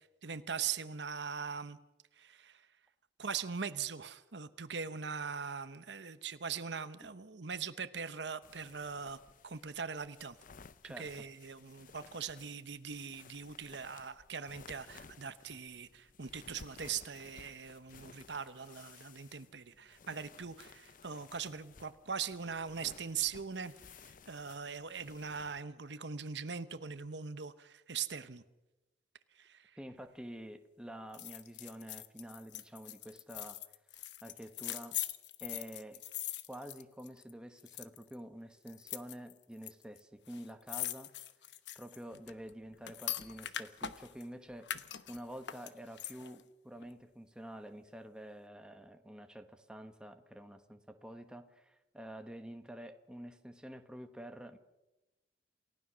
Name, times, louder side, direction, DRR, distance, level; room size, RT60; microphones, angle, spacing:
voice 1, 0.2-1.8 2.2-2.7 3.2-10.4 10.8-28.4 29.3-29.8, right 6 dB, 75° right, 12 dB, 1.0 m, -41 dB
sound 1, 8.4-25.6, left 5 dB, 50° left, 0.6 m, -57 dB
voice 2, 10.8-11.3 29.8-33.6 34.2-35.0 35.4-36.0 36.5-41.1 41.7-44.7 45.1-54.6, equal, 5° right, 6 dB, 1.3 m, -48 dB
sound 2, 31.1-37.3 37.6-38.1 38.7-39.7 40.0-40.1 40.3-44.3 44.6-46.4 46.8-46.9, left 11 dB, 85° left, 1.0 m, -42 dB
28.0 x 16.0 x 6.3 m, 1.0 s
head